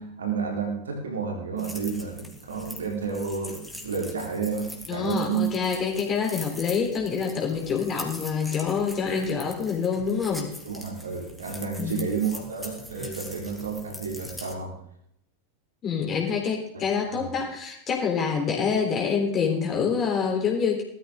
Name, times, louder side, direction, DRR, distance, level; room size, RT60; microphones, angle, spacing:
voice 1, 0.0-5.5 10.6-14.7 16.7-17.3, right 6 dB, 70° right, 0 dB, 4.1 m, -31 dB
sound 1, 1.6-14.5, left 1 dB, ahead, 2.9 m, -43 dB
voice 2, 4.9-10.5 11.8-12.1 15.8-20.8, left 6 dB, 25° left, 0 dB, 3.7 m, -26 dB
18.0 x 13.5 x 3.8 m, 0.74 s
figure-of-eight pair, 90°, 0 cm